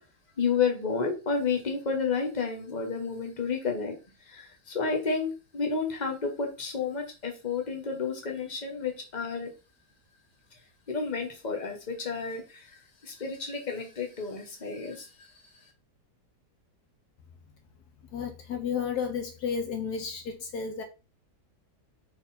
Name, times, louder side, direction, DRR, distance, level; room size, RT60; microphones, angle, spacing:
voice 1, 0.4-3.9 4.3-9.5 10.9-12.7 13.0-15.1, left 5 dB, 25° left, 1.4 m, -31 dB
voice 2, 18.1-20.8, left 6 dB, 70° left, 1.3 m, -32 dB
5.6 x 4.0 x 4.3 m
omnidirectional pair, 1.8 m